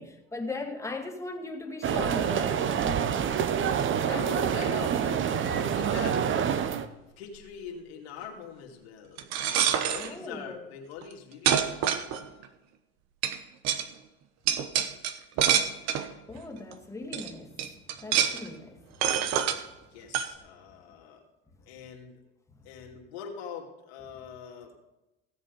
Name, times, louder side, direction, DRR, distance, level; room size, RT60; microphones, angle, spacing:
voice 1, 0.0-3.3 10.0-10.7 16.3-19.3, left 2 dB, 10° left, 2.1 m, -39 dB
sound 1, 1.8-6.9, right 8 dB, 40° right, 1.0 m, -27 dB
voice 2, 4.0-6.3 7.2-12.3 14.9-15.0 19.9-21.2 21.6-22.2 22.6-24.7, left 7 dB, 80° left, 2.6 m, -43 dB
sound 2, 9.2-10.1 11.0-11.1 11.5-12.5 13.2-13.4 13.6-13.8 14.5-16.1 16.7-16.8 17.1-17.3 17.6-18.5 19.0-19.6 20.1-20.3, right 9 dB, 55° right, 1.2 m, -26 dB
16.5 x 7.6 x 5.4 m
hypercardioid pair, 85°, 32 cm